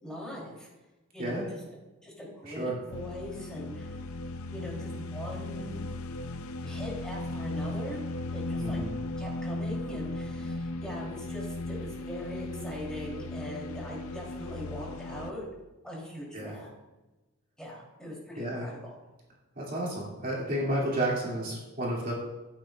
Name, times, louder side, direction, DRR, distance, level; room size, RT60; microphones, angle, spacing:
voice 1, 0.0-0.7 1.1-1.6 2.0-4.0 4.5-5.8 6.6-8.0 8.3-8.8 9.2-15.4 15.8-16.7 17.6-18.9, left 1 dB, 5° left, -4 dB, 3.1 m, -41 dB
sound 1, 2.9-15.3, left 2 dB, 65° left, 0.5 m, -36 dB
voice 2, 8.6-8.9 16.3-16.6 18.4-18.7 19.6-22.1, right 1 dB, 40° right, -5 dB, 2.3 m, -31 dB
14.5 x 8.9 x 2.4 m, 1.1 s
head